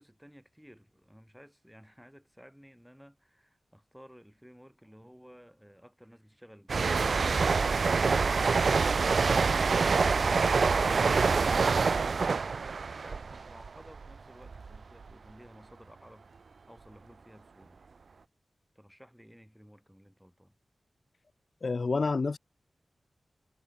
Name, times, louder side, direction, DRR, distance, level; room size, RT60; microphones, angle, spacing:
voice 1, 0.0-7.2 13.0-16.3 16.7-17.8 18.7-20.6, equal, ahead, 3.1 m, -54 dB
sound 1, 6.7-14.2 14.5-14.8, right 4 dB, 70° right, 0.3 m, -26 dB
voice 2, 21.6-22.4, left 4 dB, 55° left, 0.4 m, -28 dB
wide cardioid pair, 105°, 0 cm